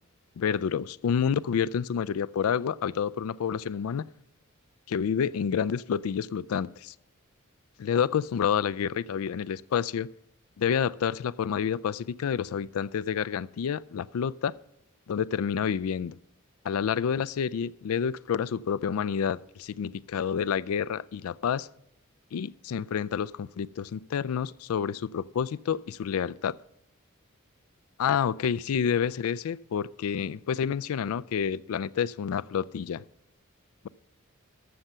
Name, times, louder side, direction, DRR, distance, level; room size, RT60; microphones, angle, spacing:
voice 1, 0.4-4.0 4.9-6.9 7.8-10.1 10.6-14.5 15.1-16.2 16.6-21.7 22.3-26.5 28.0-33.0, left 7 dB, 85° left, 0.4 m, -29 dB
13.5 x 6.6 x 5.6 m
head